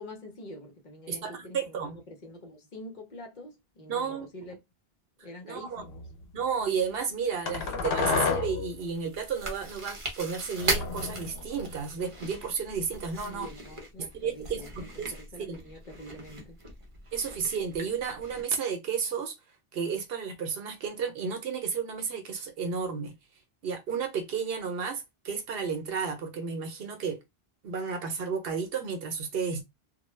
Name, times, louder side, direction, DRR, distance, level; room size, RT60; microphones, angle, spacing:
voice 1, 0.0-4.6 5.2-6.1 13.2-16.6, left 1 dB, 50° left, 0.8 m, -46 dB
voice 2, 1.1-2.0 3.9-4.3 5.4-5.8 6.3-13.5 14.0-15.6 17.1-19.3 19.7-23.1 23.6-27.2 27.6-29.6, right 6 dB, 70° right, 0.8 m, -32 dB
sound 1, 5.8-6.1 7.5-8.7 10.6-11.8, left 5 dB, 75° left, 0.8 m, -30 dB
Chewing mastication, 8.7-18.4, right 2 dB, 35° right, 0.7 m, -39 dB
2.2 x 2.1 x 3.1 m
omnidirectional pair, 1.0 m